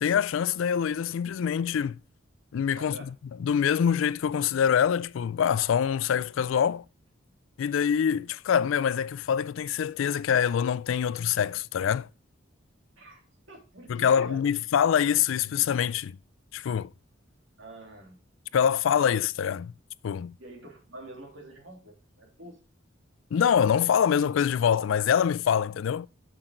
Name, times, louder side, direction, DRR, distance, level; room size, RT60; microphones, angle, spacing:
voice 1, 0.0-2.0 2.5-3.1 3.4-6.8 7.6-12.1 13.9-16.2 16.5-16.9 18.5-19.7 20.0-20.3 23.3-26.1, left 8 dB, 75° left, 0.3 m, -25 dB
voice 2, 2.8-3.1 13.0-14.4 17.6-18.2 20.4-22.6, right 1 dB, 70° right, 2.8 m, -47 dB
7.9 x 6.3 x 3.8 m
head